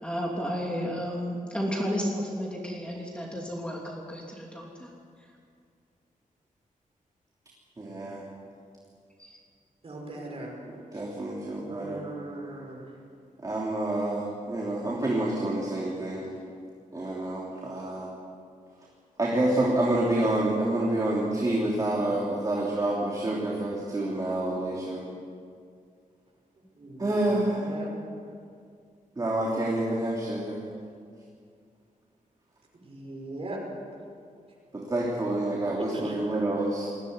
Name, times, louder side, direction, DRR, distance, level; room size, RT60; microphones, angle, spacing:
voice 1, 0.0-4.9 9.2-9.3, equal, 5° left, -2 dB, 3.0 m, -32 dB
voice 2, 7.8-8.2 10.7-12.0 13.4-16.3 16.9-18.1 19.2-25.0 27.0-27.7 29.2-30.6 34.7-36.9, right 1 dB, 25° right, -4 dB, 3.2 m, -28 dB
voice 3, 9.8-10.6 11.7-12.8 26.8-27.1 27.7-27.9 32.9-33.6 35.9-36.1, right 2 dB, 45° right, -1 dB, 5.7 m, -39 dB
21.0 x 15.5 x 9.6 m, 2.2 s
wide cardioid pair, 170°, 14 cm